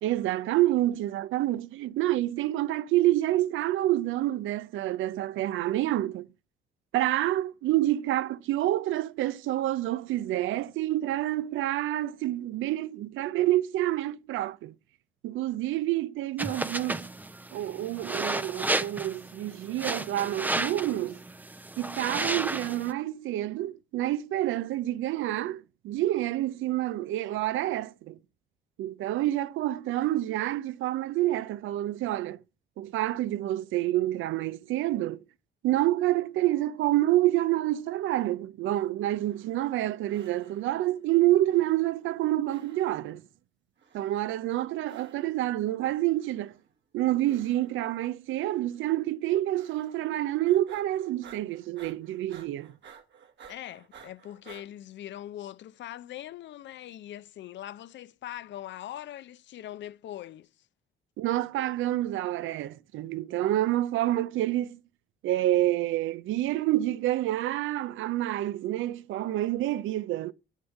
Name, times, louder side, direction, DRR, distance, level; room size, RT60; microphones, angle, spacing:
voice 1, 0.0-6.3 6.9-14.7 15.2-17.1 17.5-21.2 21.8-28.2 28.8-32.4 32.8-35.2 35.6-43.2 43.9-46.5 46.9-52.7 61.2-64.8 65.2-70.3, right 14 dB, 85° right, 0.5 m, -28 dB
sound 1, 16.4-22.9, right 2 dB, 10° right, 0.5 m, -33 dB
sound 2, 39.1-39.8 40.1-40.9 41.4-42.2 42.5-43.2 43.8-44.4 44.8-45.5 46.1-46.7 47.2-48.0 48.4-48.9 49.5-50.2 50.4-54.7, right 7 dB, 65° right, 1.6 m, -54 dB
voice 2, 53.5-60.5, left 12 dB, 65° left, 0.5 m, -41 dB
7.2 x 6.6 x 7.0 m
cardioid pair, 90°, 20 cm